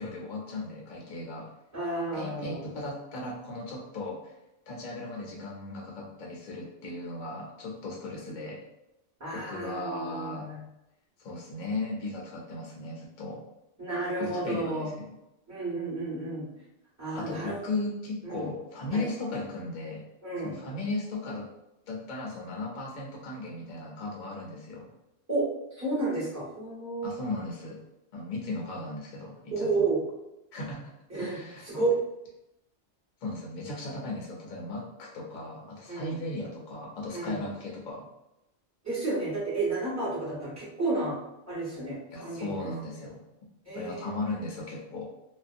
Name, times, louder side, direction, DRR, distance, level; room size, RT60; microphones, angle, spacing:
voice 1, 0.0-1.5 2.1-4.3 4.7-8.6 9.3-10.5 11.2-13.4 14.2-15.1 17.1-20.0 20.4-21.5 21.9-24.9 27.0-27.8 28.1-29.9 30.5-31.9 33.2-38.1 42.1-43.2 43.7-45.1, left 2 dB, 55° left, -2 dB, 0.5 m, -36 dB
voice 2, 1.7-2.6 9.2-10.6 13.8-14.9 15.5-16.5 17.0-17.5 18.2-18.5 18.9-19.0 20.2-20.5 25.3-25.5 25.7-27.1 29.5-30.0 31.1-31.4 31.7-31.9 35.9-36.2 37.1-37.4 38.8-41.2 41.5-42.5 43.6-44.1, right 3 dB, 15° right, -9 dB, 1.0 m, -31 dB
2.5 x 2.2 x 2.5 m, 0.89 s
omnidirectional pair, 1.2 m